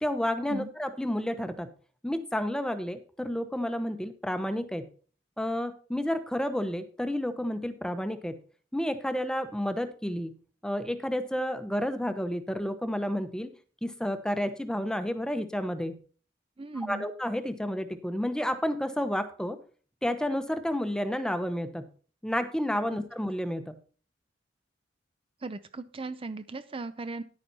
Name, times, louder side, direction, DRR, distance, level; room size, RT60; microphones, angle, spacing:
voice 1, 0.0-1.7 2.0-4.9 5.4-8.4 8.7-10.4 10.6-13.5 13.8-16.0 16.9-19.6 20.0-21.9 22.2-23.8, equal, 5° left, 10 dB, 0.9 m, -31 dB
voice 2, 16.6-17.1 25.4-27.2, right 3 dB, 30° right, 12 dB, 0.5 m, -37 dB
10.5 x 9.1 x 4.1 m, 0.41 s
head